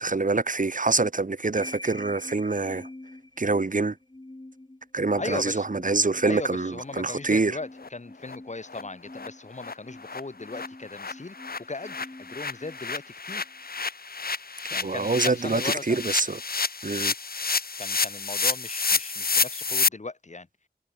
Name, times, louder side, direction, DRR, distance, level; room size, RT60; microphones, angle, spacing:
voice 1, 0.0-2.9 3.4-4.0 4.9-7.6 14.8-16.4 16.8-17.1, right 3 dB, 50° right, 1.6 m, -25 dB
sound 1, 1.6-13.6, left 2 dB, 25° left, 2.0 m, -47 dB
voice 2, 5.2-5.6 6.2-11.4 11.7-13.4 14.7-16.0 17.8-20.5, left 3 dB, 45° left, 1.5 m, -37 dB
sound 2, 6.9-7.0 7.3-7.4 7.8-7.9 8.2-8.4 8.7-8.8 9.1-9.3 9.6-9.7 10.0-19.9, left 4 dB, 65° left, 1.2 m, -29 dB
wide cardioid pair, 50°, 17 cm